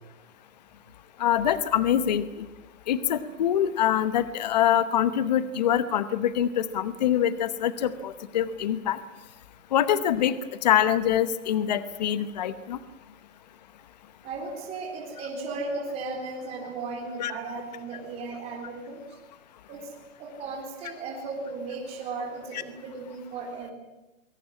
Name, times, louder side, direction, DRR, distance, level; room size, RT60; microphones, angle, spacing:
voice 1, 1.2-2.3 2.9-9.0 9.7-10.3 10.6-12.8 17.2-17.3 22.5-22.6, left 10 dB, 35° left, 14 dB, 1.0 m, -24 dB
voice 2, 14.2-19.0 19.7-19.9 20.2-23.7, right 3 dB, 15° right, -1 dB, 4.0 m, -36 dB
22.0 x 18.0 x 9.7 m, 1.0 s
hypercardioid pair, 165°, 39 cm